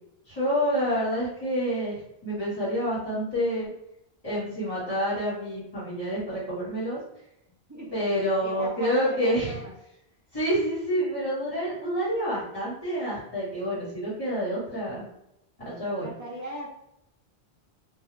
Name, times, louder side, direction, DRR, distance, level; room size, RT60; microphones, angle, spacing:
voice 1, 0.3-3.7 4.2-7.0 7.9-9.5 10.3-15.0 15.6-16.1, equal, 35° left, -11 dB, 1.3 m, -28 dB
voice 2, 7.7-9.8 16.0-16.7, right 1 dB, 25° right, -4 dB, 0.4 m, -38 dB
2.3 x 2.3 x 3.1 m, 0.82 s
omnidirectional pair, 1.1 m